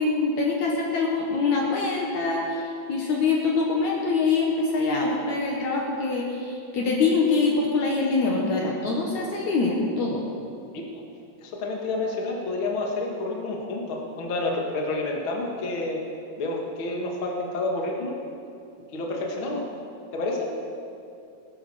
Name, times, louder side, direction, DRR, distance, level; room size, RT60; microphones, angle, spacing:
voice 1, 0.0-10.2, left 4 dB, 60° left, -2 dB, 2.4 m, -24 dB
voice 2, 11.4-16.0 16.4-18.2 18.9-19.6 20.1-20.5, left 2 dB, 45° left, -1 dB, 2.0 m, -29 dB
19.0 x 12.0 x 4.3 m, 2.6 s
omnidirectional pair, 4.1 m